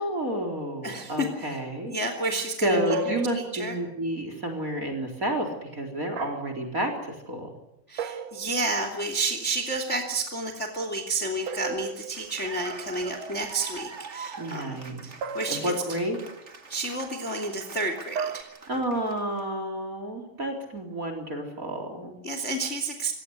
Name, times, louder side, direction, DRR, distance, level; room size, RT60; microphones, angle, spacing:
voice 1, 0.0-1.9 2.6-7.5 14.4-15.1 15.5-16.2 18.7-22.2, right 1 dB, 20° right, 5 dB, 3.9 m, -30 dB
voice 2, 0.8-1.6 1.9-3.8 7.9-14.8 15.0-15.7 16.7-18.5 22.2-23.1, right 2 dB, 20° left, 6 dB, 2.6 m, -30 dB
sound 1, 2.9-4.0 6.2-6.7 8.0-8.9 11.5-12.6 15.2-16.1 18.2-18.4, right 4 dB, 65° right, 1.7 m, -35 dB
Cheering / Applause, 11.9-19.4, right 4 dB, 85° right, 0.6 m, -44 dB
25.5 x 18.5 x 8.3 m, 0.83 s
omnidirectional pair, 4.4 m